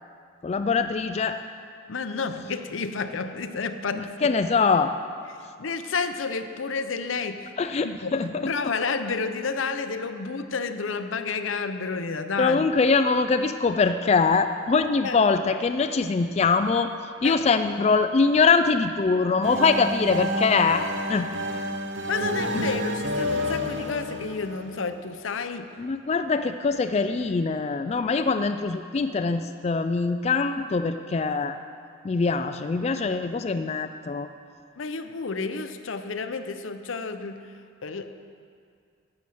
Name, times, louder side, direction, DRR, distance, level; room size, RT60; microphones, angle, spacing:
voice 1, 0.4-1.4 3.9-4.9 7.6-8.7 12.4-16.9 17.2-20.8 21.1-21.3 22.5-22.7 25.8-31.6 32.0-34.3, left 4 dB, 35° left, 8 dB, 0.3 m, -23 dB
voice 2, 1.9-4.3 5.6-7.5 7.8-8.2 8.5-12.6 15.0-15.2 17.2-17.4 22.1-25.7 34.8-37.5 37.8-38.1, left 4 dB, 85° left, 9 dB, 0.7 m, -30 dB
sound 1, 19.4-25.2, equal, 65° right, 0.9 m, -29 dB
11.5 x 7.7 x 7.7 m, 2.3 s
head